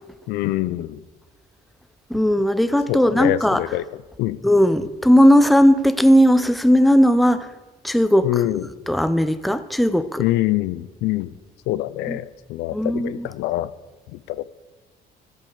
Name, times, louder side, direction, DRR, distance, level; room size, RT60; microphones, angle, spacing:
voice 1, 0.3-1.0 2.9-3.8 4.2-4.4 8.2-8.6 10.2-11.3 11.7-13.7 14.1-14.5, left 15 dB, 85° left, 16 dB, 0.5 m, -24 dB
voice 2, 2.1-3.6 4.4-7.5 7.8-8.3 8.9-10.2 12.1-12.2 12.7-13.3, equal, ahead, 12 dB, 0.5 m, -17 dB
14.5 x 5.5 x 6.6 m, 1.2 s
cardioid pair, 110°, 17 cm